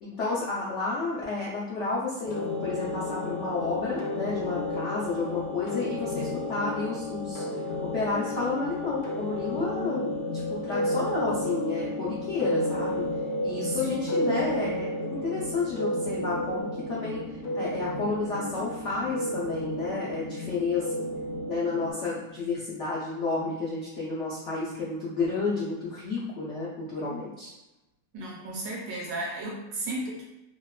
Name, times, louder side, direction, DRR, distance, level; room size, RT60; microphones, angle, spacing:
voice 1, 0.0-7.4 7.8-13.1 13.4-17.2 17.5-21.0 21.5-27.5, left 3 dB, 85° left, -7 dB, 0.6 m, -31 dB
sound 1, 2.2-21.9, left 1 dB, 65° left, 1.1 m, -32 dB
voice 2, 13.7-14.3 28.1-30.2, right 1 dB, 70° right, -3 dB, 1.1 m, -34 dB
2.9 x 2.1 x 2.3 m, 0.94 s
omnidirectional pair, 1.9 m